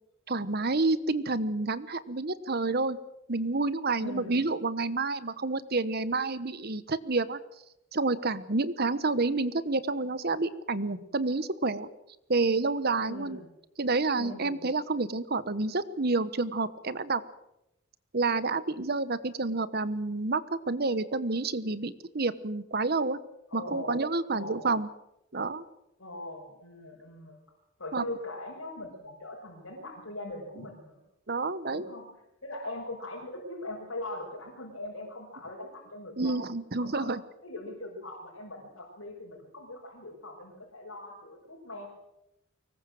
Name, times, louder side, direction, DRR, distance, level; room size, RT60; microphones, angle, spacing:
voice 1, 0.3-3.0 3.3-7.4 7.9-11.9 12.3-13.4 13.8-17.2 18.1-20.4 20.7-23.2 23.5-24.9 25.3-25.6 27.9-28.0 31.3-31.8 36.2-37.2, right 3 dB, 50° right, 14 dB, 1.1 m, -29 dB
voice 2, 4.0-4.4 13.0-13.5 14.2-14.6 23.5-24.0 24.3-24.7 26.0-27.4 27.8-31.0 31.7-32.1 32.4-36.4 36.8-37.1 37.4-41.9, left 2 dB, 90° left, -3 dB, 5.9 m, -41 dB
24.0 x 20.0 x 7.8 m, 0.86 s
head